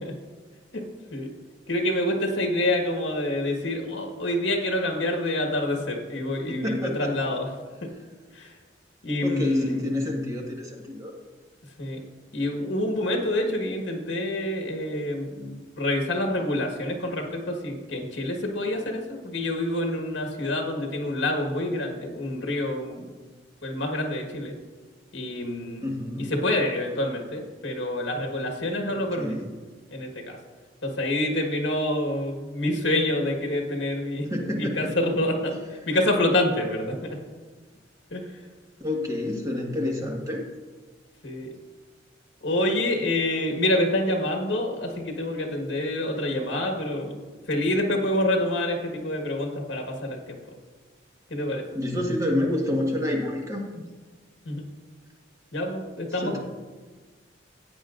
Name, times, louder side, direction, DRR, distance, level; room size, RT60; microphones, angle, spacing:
voice 1, 1.7-7.5 8.3-8.5 9.0-9.8 11.8-12.0 12.3-23.0 23.6-24.5 25.1-25.9 26.3-29.3 29.9-30.4 30.8-34.3 34.6-35.6 35.9-37.2 38.1-38.2 41.2-41.5 42.4-47.2 47.5-50.4 51.3-51.6 54.4-54.6 55.5-56.4, left 1 dB, 65° left, 2 dB, 1.5 m, -27 dB
voice 2, 6.5-7.1 9.2-11.2 25.8-26.3 29.2-29.5 34.3-34.9 38.8-40.4 51.7-53.6 56.2-56.4, left 1 dB, 20° right, -1 dB, 1.5 m, -28 dB
16.0 x 8.6 x 2.5 m, 1.4 s
head